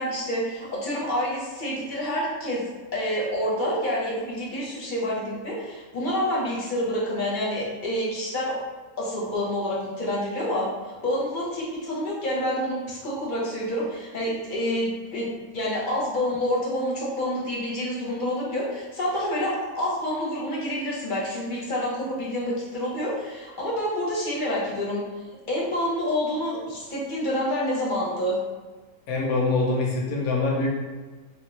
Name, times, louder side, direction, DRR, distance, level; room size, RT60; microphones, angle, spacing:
voice 1, 0.0-2.6 2.9-8.6 9.0-25.0 25.5-28.4, equal, 40° left, -5 dB, 0.8 m, -28 dB
voice 2, 29.1-30.7, left 3 dB, 80° left, -2 dB, 1.2 m, -24 dB
3.4 x 2.9 x 3.1 m, 1.3 s
omnidirectional pair, 1.5 m